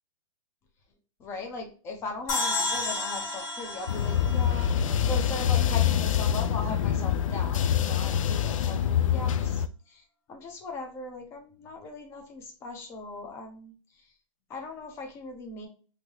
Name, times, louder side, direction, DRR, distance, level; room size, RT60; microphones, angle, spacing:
voice 1, 1.2-4.7 5.0-10.0 10.3-13.7 14.5-15.7, left 3 dB, 15° left, 3 dB, 0.6 m, -39 dB
sound 1, 2.3-5.6, left 2 dB, 30° left, 1.5 m, -32 dB
sound 2, 3.9-9.7, left 9 dB, 75° left, 0.4 m, -25 dB
3.2 x 2.8 x 2.7 m, 0.39 s
hypercardioid pair, 160°, 17 cm